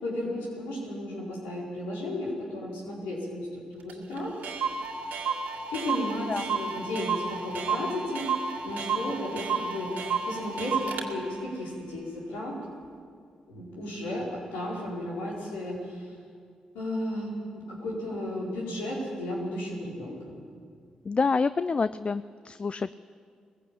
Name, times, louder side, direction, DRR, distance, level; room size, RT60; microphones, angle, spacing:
voice 1, 0.0-4.3 5.7-8.3 8.6-12.6 13.5-16.1 16.7-20.2, left 1 dB, 85° left, -4 dB, 4.8 m, -34 dB
Clock, 3.9-4.0 4.2-4.3 4.4-11.1, right 5 dB, 75° right, 2.0 m, -31 dB
voice 2, 21.1-22.9, left 4 dB, 40° left, 14 dB, 0.5 m, -27 dB
19.5 x 15.5 x 8.6 m, 2.1 s
hypercardioid pair, 40°, 3 cm